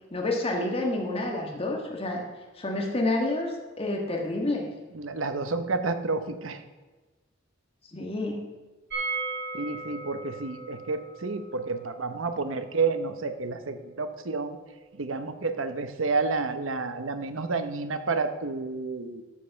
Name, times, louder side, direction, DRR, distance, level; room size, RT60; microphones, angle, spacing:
voice 1, 0.1-2.2 2.5-4.7 7.8-8.4, left 2 dB, 30° left, 0 dB, 1.4 m, -29 dB
voice 2, 4.9-6.6 9.5-14.6 14.9-19.2, right 4 dB, 85° right, 9 dB, 0.9 m, -30 dB
sound 1, 8.9-14.7 14.9-15.0 15.3-15.4, right 3 dB, 65° right, 3.8 m, -38 dB
13.0 x 5.4 x 5.7 m, 1.2 s
head